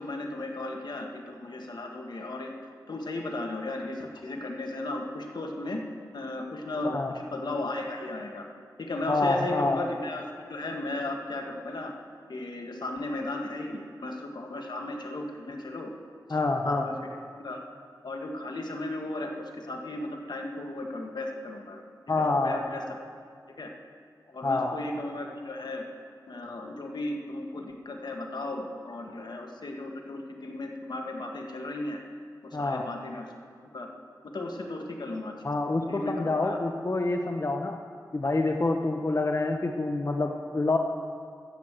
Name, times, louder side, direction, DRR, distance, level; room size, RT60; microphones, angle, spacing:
voice 1, 0.0-2.5 2.9-5.9 6.1-8.4 8.8-11.9 12.3-15.9 16.6-16.9 17.4-17.6 18.0-21.8 22.2-22.8 23.6-23.7 24.3-25.8 26.3-32.0 32.4-33.3 33.7-33.9 34.3-35.4 35.9-36.6, left 2 dB, 70° left, 2 dB, 1.5 m, -35 dB
voice 2, 9.1-9.8 16.3-16.9 22.1-22.6 24.4-24.7 32.5-32.8 35.4-37.8 38.1-40.8, left 2 dB, 40° left, 4 dB, 0.8 m, -27 dB
13.0 x 8.3 x 7.4 m, 2.2 s
wide cardioid pair, 60°, 8 cm